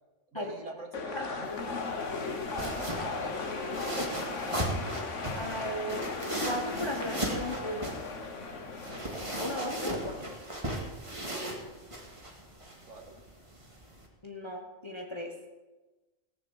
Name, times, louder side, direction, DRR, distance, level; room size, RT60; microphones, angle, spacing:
voice 1, 0.3-3.9 12.9-13.2, right 2 dB, 85° right, 3 dB, 2.1 m, -48 dB
sound 1, 0.9-10.3, left 4 dB, 80° left, 1.7 m, -37 dB
sound 2, 1.4-14.1, right 1 dB, 25° right, 2.2 m, -37 dB
voice 2, 5.3-6.0 6.4-7.9 9.4-10.2 14.2-15.3, equal, 25° left, 2 dB, 1.2 m, -36 dB
18.0 x 7.1 x 7.2 m, 1.2 s
omnidirectional pair, 1.3 m